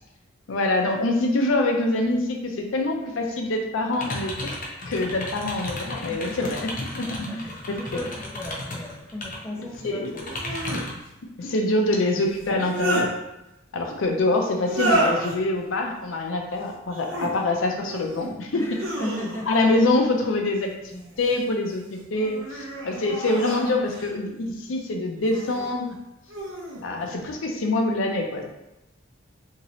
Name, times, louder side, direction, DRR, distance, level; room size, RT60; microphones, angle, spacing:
voice 1, 0.5-4.5 4.9-8.1 9.8-10.2 11.4-13.1 13.7-18.6 19.5-25.9 26.8-28.4, left 2 dB, 80° left, 2 dB, 0.5 m, -25 dB
sound 1, 3.9-9.4 9.7-11.0, left 2 dB, 45° left, 0.7 m, -34 dB
voice 2, 6.1-6.5 7.0-10.2 18.5-19.6, left 1 dB, 15° left, -2 dB, 0.4 m, -37 dB
sound 2, 7.8-7.9 10.2-10.8 12.4-13.1 14.6-15.4 16.8-17.3 17.8-18.3 18.7-19.6 20.9-21.5 22.1-24.1 25.2-25.7 26.3-26.8, right 1 dB, 90° right, 0.7 m, -30 dB
2.9 x 2.7 x 2.9 m, 0.90 s
head